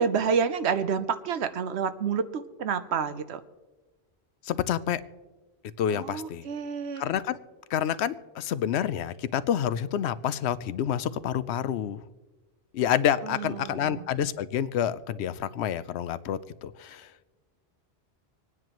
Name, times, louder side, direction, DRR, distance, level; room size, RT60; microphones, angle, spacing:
voice 1, 0.0-3.4 5.9-7.0 13.2-14.1, right 6 dB, 85° right, 12 dB, 1.0 m, -29 dB
voice 2, 4.4-5.0 5.8-6.5 7.0-7.4 7.7-12.0 12.7-17.1, left 9 dB, 85° left, 15 dB, 0.8 m, -28 dB
26.5 x 9.6 x 3.0 m, 1.2 s
omnidirectional pair, 1.1 m